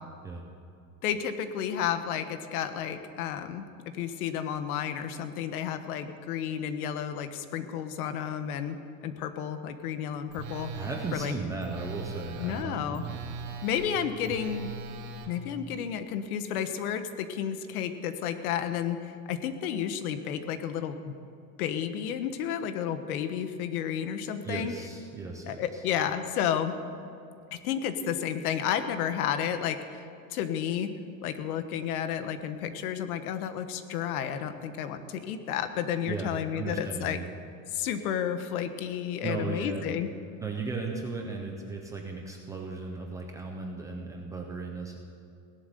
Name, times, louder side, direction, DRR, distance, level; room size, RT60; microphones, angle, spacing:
voice 1, 1.0-3.6 3.9-10.8 11.1-11.3 12.4-13.0 13.6-14.7 15.3-21.1 21.6-24.7 25.5-26.7 27.5-30.9 31.2-37.2 37.7-40.1, left 9 dB, 85° left, 9 dB, 1.4 m, -32 dB
Telephone, 10.3-15.3, right 4 dB, 55° right, 1.8 m, -40 dB
voice 2, 10.8-13.2 24.4-25.8 36.1-37.2 39.2-40.0 40.4-45.0, right 4 dB, 10° right, 0 dB, 0.3 m, -36 dB
17.0 x 11.5 x 6.8 m, 2.6 s
supercardioid pair, 170°, 43 cm